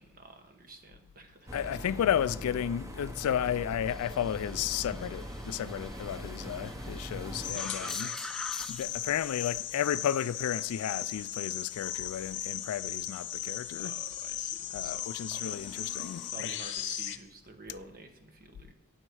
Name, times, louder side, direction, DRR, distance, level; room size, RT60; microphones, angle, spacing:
voice 1, 0.0-1.9 7.5-8.3 13.8-18.7, right 3 dB, 40° right, 1.4 m, -50 dB
voice 2, 1.5-8.1 8.7-13.9 14.7-16.5, left 9 dB, 80° left, 0.3 m, -33 dB
sound 1, 1.5-7.5, equal, 15° right, 1.0 m, -41 dB
sound 2, 3.9-11.2 15.5-16.3, left 1 dB, ahead, 0.6 m, -46 dB
sound 3, 7.4-17.2, left 11 dB, 55° left, 0.8 m, -37 dB
17.5 x 6.5 x 4.8 m
head